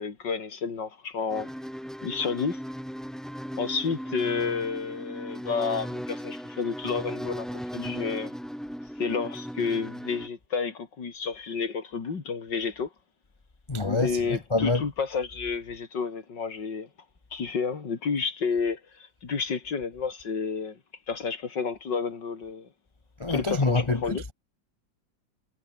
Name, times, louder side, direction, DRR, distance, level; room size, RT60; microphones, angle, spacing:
voice 1, 0.0-1.5 2.0-2.6 3.6-8.4 9.0-12.9 13.8-16.9 17.3-20.8 21.1-22.7 23.3-24.2, left 5 dB, 65° left, 3.5 m, -30 dB
sound 1, 1.3-10.3, equal, ahead, 6.3 m, -37 dB
voice 2, 13.7-14.8 23.2-24.3, left 3 dB, 20° left, 0.9 m, -26 dB
omnidirectional pair, 2.1 m